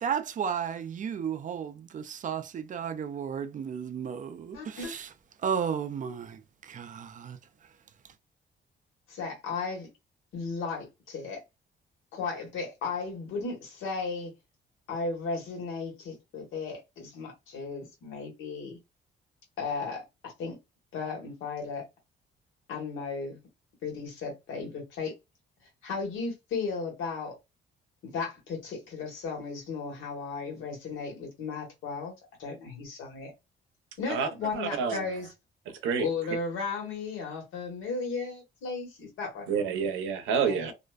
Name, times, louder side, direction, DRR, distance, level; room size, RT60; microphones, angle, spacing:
voice 1, 0.0-5.1 5.4-6.2 7.3-7.4, right 7 dB, 40° right, 0.4 m, -33 dB
voice 2, 4.5-4.9 9.1-9.9 10.3-11.4 12.1-14.3 14.9-18.8 19.6-20.6 20.9-21.8 22.7-23.4 23.8-25.1 25.8-27.4 28.0-32.1 32.4-33.3 34.0-35.3 36.0-39.6 40.4-40.7, left 4 dB, 90° left, 1.2 m, -35 dB
voice 3, 34.5-35.1 35.7-36.1 39.5-40.7, right 6 dB, 90° right, 0.6 m, -28 dB
2.5 x 2.1 x 2.3 m
cardioid pair, 90°, 20 cm